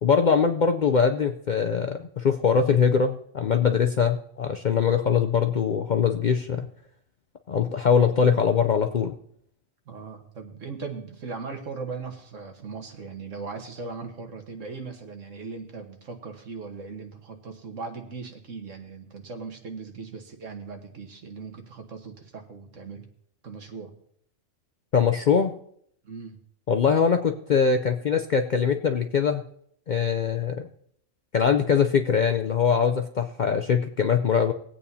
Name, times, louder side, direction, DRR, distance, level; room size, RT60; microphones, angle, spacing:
voice 1, 0.0-6.7 7.5-9.1 24.9-25.5 26.7-29.4 29.9-30.6 31.3-34.5, left 6 dB, 55° left, 6 dB, 0.5 m, -22 dB
voice 2, 9.8-23.1 23.4-23.9 26.0-26.4, right 4 dB, 75° right, 4 dB, 1.7 m, -39 dB
20.5 x 8.5 x 2.8 m, 0.67 s
omnidirectional pair, 1.3 m